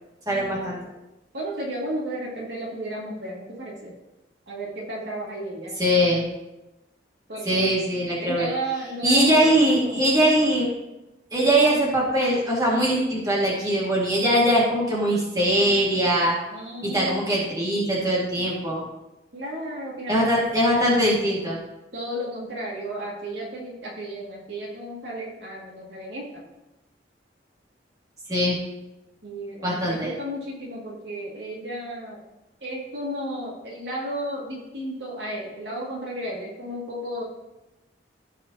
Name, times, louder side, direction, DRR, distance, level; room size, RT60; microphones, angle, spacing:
voice 1, 0.3-0.8 5.8-6.2 7.4-8.5 9.0-10.7 11.3-16.4 16.8-18.8 20.1-21.6 28.3-28.6 29.6-30.1, equal, 20° right, -5 dB, 2.1 m, -21 dB
voice 2, 1.3-3.9 4.5-5.7 7.3-10.0 16.5-17.3 19.3-20.5 21.9-26.4 29.2-32.2 32.6-37.2, right 1 dB, 75° right, -4 dB, 2.3 m, -33 dB
15.0 x 5.0 x 2.9 m, 0.98 s
head